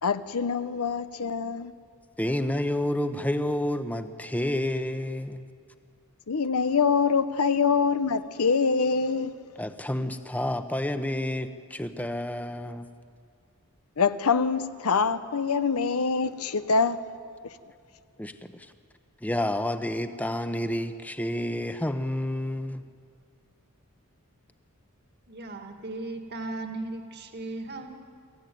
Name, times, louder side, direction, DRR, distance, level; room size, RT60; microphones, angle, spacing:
voice 1, 0.0-1.7 6.3-9.4 14.0-17.0 17.4-17.5, left 5 dB, 90° left, 0.8 m, -25 dB
voice 2, 2.2-5.4 9.6-12.9 18.2-18.3 19.2-22.8, left 1 dB, 5° left, 0.8 m, -29 dB
voice 3, 25.3-27.9, right 2 dB, 50° right, 2.0 m, -36 dB
23.5 x 15.0 x 9.3 m
head